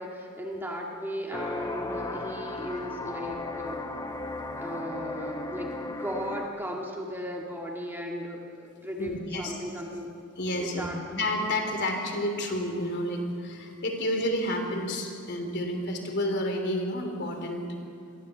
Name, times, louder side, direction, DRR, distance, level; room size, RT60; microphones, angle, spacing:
voice 1, 0.0-3.8 4.6-10.1 10.6-11.0, equal, 10° right, -1 dB, 1.9 m, -36 dB
sound 1, 1.3-6.5, left 2 dB, 20° left, 1.3 m, -35 dB
voice 2, 9.0-9.6 10.4-17.7, left 1 dB, 50° left, 4 dB, 3.1 m, -30 dB
22.5 x 14.5 x 8.1 m, 2.6 s
head